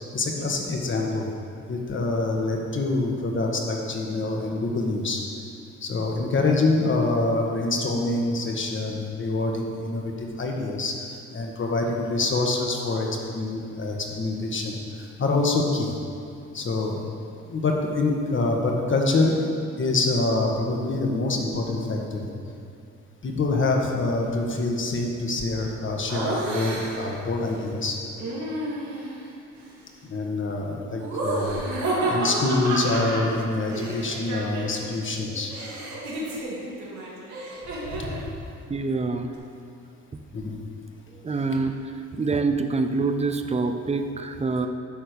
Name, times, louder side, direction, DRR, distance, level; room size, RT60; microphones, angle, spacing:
voice 1, 0.1-1.3 1.7-5.2 5.8-11.1 11.3-15.9 16.5-17.0 17.5-19.5 19.8-22.3 23.2-28.0 30.0-31.6 32.0-35.5 37.9-38.2 40.3-40.6, left 2 dB, 40° left, 0 dB, 1.5 m, -26 dB
Laughter, 26.1-27.1 28.2-29.2 31.0-34.9 35.2-38.3, right 1 dB, 70° right, 2.4 m, -30 dB
voice 2, 38.7-39.3 41.2-41.8 42.1-44.7, right 3 dB, 20° right, 7 dB, 0.6 m, -25 dB
11.0 x 4.4 x 6.7 m, 2.5 s
cardioid pair, 90°, 30 cm